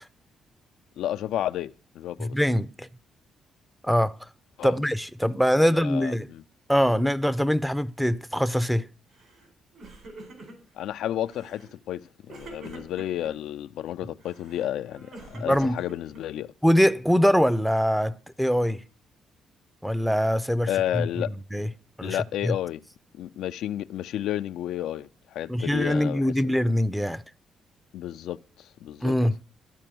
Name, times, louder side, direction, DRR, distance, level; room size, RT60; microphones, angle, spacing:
voice 1, 1.0-2.4 4.6-4.7 5.6-6.4 10.7-16.5 20.7-21.3 22.0-22.8 23.1-26.5 27.9-29.1, left 12 dB, 80° left, 0.4 m, -32 dB
voice 2, 2.2-2.9 3.8-4.1 4.6-6.3 6.7-8.9 14.0-14.1 15.3-15.8 16.6-18.8 19.8-20.7 20.9-21.1 21.5-21.7 22.0-22.2 22.4-22.5 25.5-27.2 29.0-29.4, equal, ahead, 0.6 m, -23 dB
Crying sobbing, 9.1-9.5 9.7-10.8 11.3-11.7 12.3-13.3 14.2-16.5, right 2 dB, 60° right, 4.4 m, -45 dB
13.0 x 4.5 x 7.7 m
cardioid pair, 90°, 0 cm